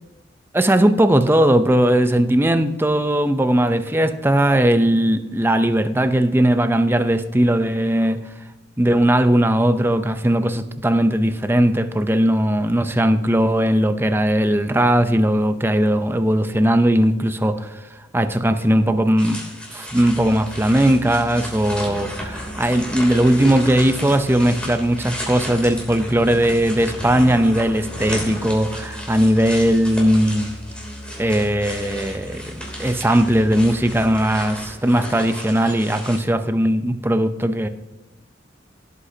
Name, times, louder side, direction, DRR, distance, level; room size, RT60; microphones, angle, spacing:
voice 1, 0.5-8.2 8.8-17.8 18.1-19.4 19.7-30.5 31.2-37.7, right 1 dB, 10° right, 9 dB, 0.6 m, -18 dB
sound 1, 19.2-36.2, equal, 5° left, 3.0 m, -34 dB
Musical instrument, 19.9-34.6, equal, 30° left, 3.1 m, -38 dB
17.0 x 8.2 x 2.8 m, 1.1 s
head